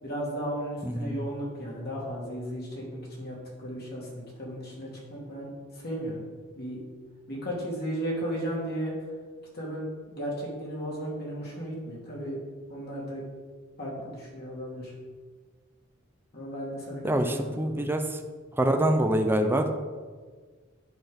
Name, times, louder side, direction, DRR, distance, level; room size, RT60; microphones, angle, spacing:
voice 1, 0.0-6.3 6.6-6.8 7.3-8.9 9.5-12.4 12.7-13.2 13.8-14.9 16.3-17.8, equal, 50° left, -4 dB, 2.5 m, -35 dB
voice 2, 17.0-18.2 18.5-19.7, right 1 dB, 10° right, 5 dB, 0.6 m, -25 dB
8.1 x 6.0 x 5.2 m, 1.5 s
head